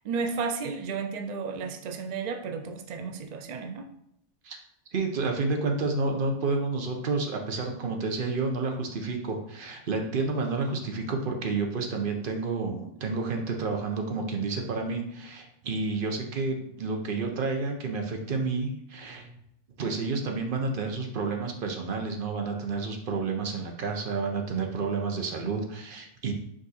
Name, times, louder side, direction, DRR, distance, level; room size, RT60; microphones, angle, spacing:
voice 1, 0.0-3.9, right 5 dB, 85° right, 5 dB, 0.3 m, -33 dB
voice 2, 4.9-19.4 19.8-26.3, right 4 dB, 50° right, 3 dB, 0.8 m, -30 dB
5.0 x 2.6 x 4.1 m, 0.77 s
omnidirectional pair, 1.3 m